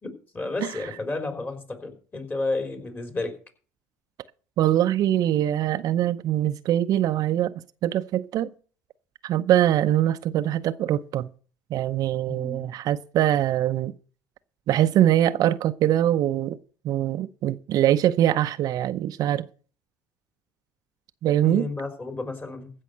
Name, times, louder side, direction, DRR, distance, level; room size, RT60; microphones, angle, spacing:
voice 1, 0.0-3.4 12.3-12.6 21.4-22.7, left 3 dB, 25° left, 3.6 m, -32 dB
voice 2, 4.6-7.5 7.8-8.5 9.2-11.3 11.7-13.9 14.7-16.6 16.8-19.5 21.2-21.7, right 12 dB, 55° right, 0.7 m, -23 dB
15.5 x 5.5 x 7.9 m
supercardioid pair, 80°, 7 cm